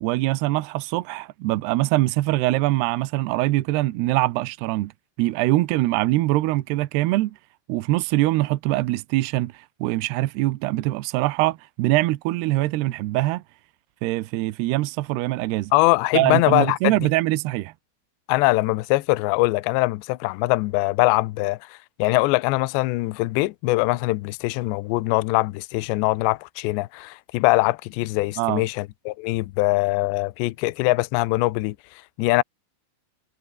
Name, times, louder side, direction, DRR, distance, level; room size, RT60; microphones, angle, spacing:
voice 1, 0.0-4.9 5.2-7.4 7.7-13.4 14.0-15.7 16.1-17.7 28.4-28.7, right 18 dB, 85° right, 2.4 m, -23 dB
voice 2, 15.7-16.9 18.3-31.8 32.2-32.4, left 21 dB, 75° left, 2.7 m, -22 dB
omnidirectional pair, 5.8 m